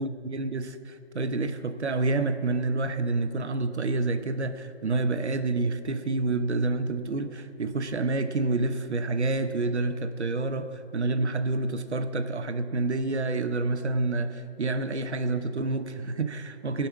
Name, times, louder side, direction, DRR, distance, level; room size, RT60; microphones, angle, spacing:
voice 1, 0.0-16.9, right 3 dB, 80° right, 9 dB, 1.0 m, -28 dB
17.0 x 5.7 x 7.2 m, 2.5 s
figure-of-eight pair, 155°, 33 cm